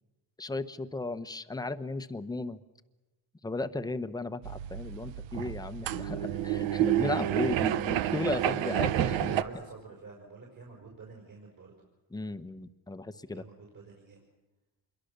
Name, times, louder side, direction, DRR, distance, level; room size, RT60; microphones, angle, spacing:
voice 1, 0.4-2.6 3.4-9.3 12.1-13.4, left 2 dB, 10° left, 10 dB, 0.9 m, -35 dB
sound 1, 4.4-9.4, right 12 dB, 85° right, 1.0 m, -29 dB
voice 2, 9.0-11.7 13.3-14.2, right 4 dB, 45° right, -1 dB, 5.5 m, -48 dB
26.5 x 22.5 x 6.8 m, 1.1 s
cardioid pair, 105°, 44 cm